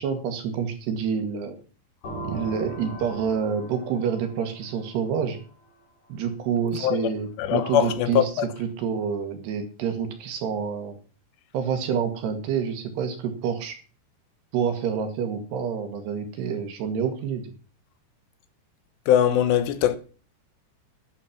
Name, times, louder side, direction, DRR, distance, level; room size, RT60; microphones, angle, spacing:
voice 1, 0.0-1.6 2.2-5.4 6.1-8.3 8.6-11.0 11.5-13.8 14.5-17.5, right 7 dB, 70° right, 4.1 m, -28 dB
sound 1, 2.0-5.8, right 1 dB, 40° left, 5.3 m, -39 dB
voice 2, 7.4-8.5 19.1-20.0, left 10 dB, 80° left, 3.2 m, -21 dB
12.0 x 9.2 x 6.0 m
omnidirectional pair, 5.0 m